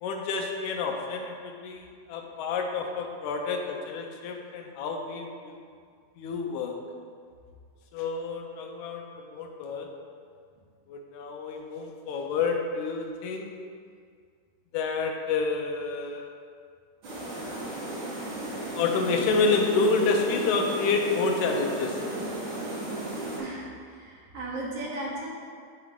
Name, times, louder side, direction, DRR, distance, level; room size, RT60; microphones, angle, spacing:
voice 1, 0.0-5.6 6.2-6.8 7.9-9.9 10.9-13.6 14.7-16.3 18.7-22.0, left 4 dB, 85° left, 2 dB, 2.1 m, -29 dB
sound 1, 17.0-23.4, right 1 dB, 45° right, 2.1 m, -34 dB
voice 2, 23.4-25.3, right 1 dB, 65° right, -4 dB, 1.7 m, -36 dB
9.2 x 4.7 x 3.7 m, 2.1 s
omnidirectional pair, 3.4 m